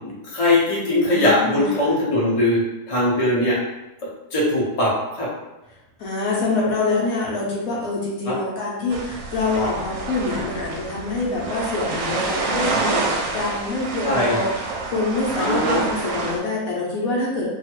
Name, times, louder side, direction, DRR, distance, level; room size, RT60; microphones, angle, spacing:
voice 1, 0.0-3.6 4.3-5.3 8.2-8.3 14.0-14.4 15.4-15.8, left 1 dB, 35° left, -6 dB, 0.5 m, -20 dB
voice 2, 1.0-1.9 6.0-17.5, left 3 dB, 65° left, -4 dB, 1.1 m, -25 dB
sound 1, 8.9-16.4, right 3 dB, 70° right, 1.0 m, -27 dB
2.8 x 2.3 x 2.9 m, 1.0 s
omnidirectional pair, 1.7 m